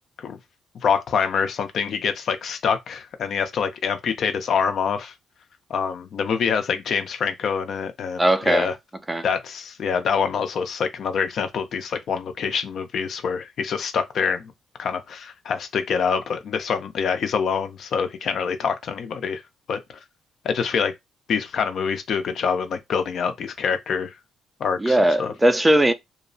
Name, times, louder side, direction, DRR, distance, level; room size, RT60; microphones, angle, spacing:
voice 1, 0.8-5.1 5.7-8.7 9.2-14.5 14.8-19.4 19.7-19.8 20.4-20.9 21.3-24.1 24.6-25.3, left 6 dB, 65° left, 0.5 m, -25 dB
voice 2, 8.2-8.7 9.1-9.2 24.8-25.9, right 1 dB, 15° right, 0.4 m, -19 dB
2.7 x 2.0 x 2.6 m
cardioid pair, 90°, 0 cm